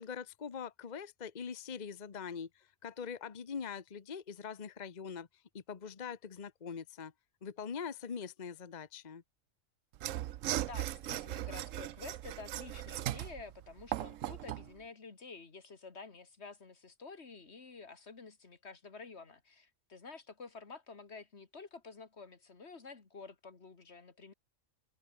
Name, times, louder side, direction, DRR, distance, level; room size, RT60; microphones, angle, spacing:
voice 1, 0.0-5.3 5.5-7.1 7.4-9.2, left 6 dB, 35° left, 1.1 m, -43 dB
Mechanisms / Sawing, 9.9-14.7, right 13 dB, 80° right, 1.0 m, -38 dB
voice 2, 10.6-24.3, left 4 dB, 55° left, 2.4 m, -50 dB
omnidirectional pair, 1.3 m